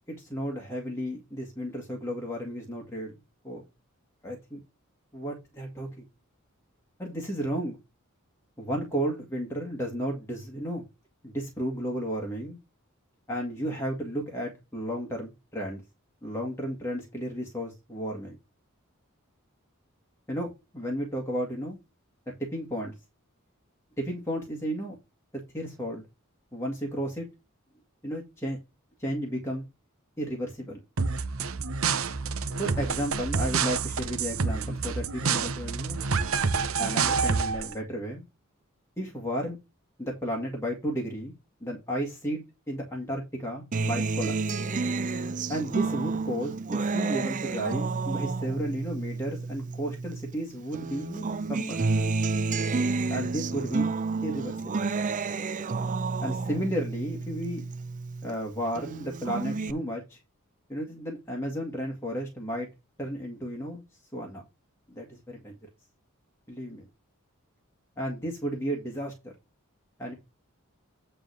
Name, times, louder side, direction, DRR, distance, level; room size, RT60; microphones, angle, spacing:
voice 1, 0.1-3.2 3.4-3.6 4.2-4.6 5.1-6.1 7.0-7.8 8.6-10.8 11.2-12.6 13.3-15.8 16.2-18.4 20.3-21.8 22.3-22.9 24.0-25.0 25.5-26.1 26.5-27.3 28.0-28.6 29.0-29.7 30.2-30.8 32.6-36.0 36.8-38.2 39.0-39.6 40.0-41.3 41.6-42.4 42.7-44.6 45.5-51.9 53.1-53.9 54.2-54.8 56.2-57.7 58.2-60.2 60.7-62.7 63.0-63.8 64.1-64.4 64.9-65.5 66.5-66.9 68.0-69.3 70.0-70.1, equal, 10° left, -1 dB, 1.8 m, -33 dB
sound 1, 31.0-37.7, right 5 dB, 70° right, 0.8 m, -28 dB
Acoustic guitar, 43.7-50.4 50.7-58.4 58.8-59.7, right 3 dB, 35° right, 0.5 m, -30 dB
9.6 x 3.4 x 6.4 m, 0.25 s
head